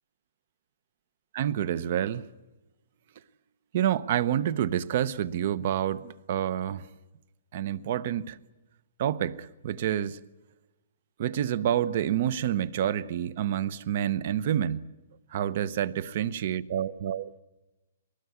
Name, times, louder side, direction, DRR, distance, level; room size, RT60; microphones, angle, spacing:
voice 1, 1.3-2.2 3.7-6.8 7.5-8.4 9.0-10.2 11.2-14.9 15.3-17.3, right 10 dB, 45° right, 0.9 m, -28 dB
22.0 x 20.0 x 9.5 m
hypercardioid pair, 165°, 0 cm